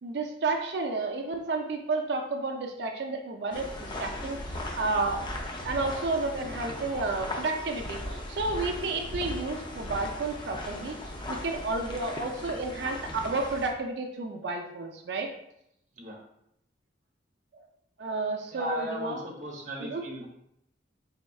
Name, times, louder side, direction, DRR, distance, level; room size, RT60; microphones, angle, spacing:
voice 1, 0.0-4.4 4.8-5.2 5.6-15.3 17.5-17.6 18.0-19.2 19.8-20.0, right 3 dB, 60° right, 3 dB, 0.4 m, -31 dB
sound 1, 3.5-13.7, left 1 dB, 25° left, 0.4 m, -38 dB
voice 2, 18.5-20.3, right 1 dB, 45° right, -2 dB, 0.9 m, -37 dB
4.2 x 3.5 x 2.3 m, 0.77 s
head